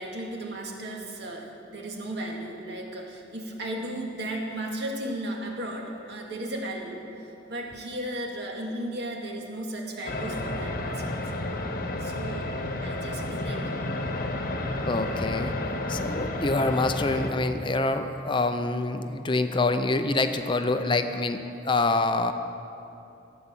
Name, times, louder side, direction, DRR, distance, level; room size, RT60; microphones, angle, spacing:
voice 1, 0.0-11.3 12.0-13.8, right 1 dB, 60° right, 0 dB, 2.1 m, -35 dB
sound 1, 10.1-17.3, left 1 dB, 50° left, 1.1 m, -31 dB
voice 2, 14.8-15.5 15.9-22.3, left 2 dB, 25° left, 8 dB, 0.5 m, -26 dB
15.0 x 9.5 x 7.4 m, 2.8 s
head